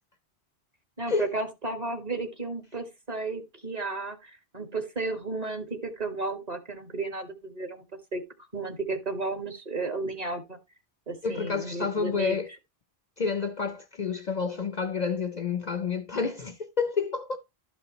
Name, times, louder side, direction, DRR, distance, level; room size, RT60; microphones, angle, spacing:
voice 1, 1.0-7.8 8.1-8.2 8.5-10.6 11.1-12.4, right 3 dB, 40° right, 1.8 m, -33 dB
voice 2, 11.2-12.5 13.2-17.4, left 5 dB, 45° left, 0.7 m, -29 dB
12.0 x 5.3 x 3.0 m
omnidirectional pair, 1.1 m